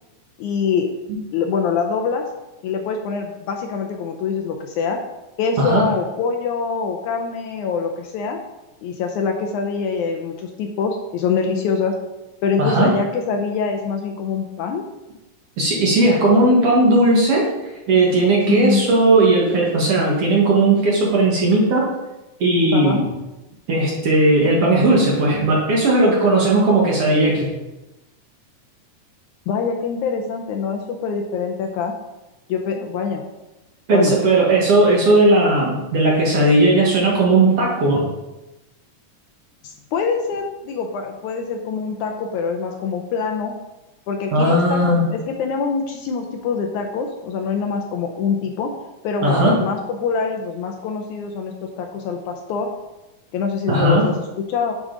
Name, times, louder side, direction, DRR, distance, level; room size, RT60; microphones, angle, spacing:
voice 1, 0.4-0.9 1.3-2.3 2.6-5.0 5.4-8.4 8.8-12.0 12.4-14.8 18.5-18.8 22.7-23.0 29.5-31.9 32.5-33.2 33.9-34.1 39.6-43.5 44.1-48.8 49.0-52.7 53.3-54.7, left 5 dB, 75° left, 3 dB, 1.9 m, -24 dB
voice 2, 12.6-12.9 15.6-17.5 17.9-21.9 22.4-23.1 23.7-27.5 33.9-38.0 44.3-45.0 49.2-49.5 53.7-54.0, right 2 dB, 55° right, -3 dB, 1.9 m, -16 dB
9.7 x 4.9 x 3.8 m, 1.0 s
omnidirectional pair, 3.8 m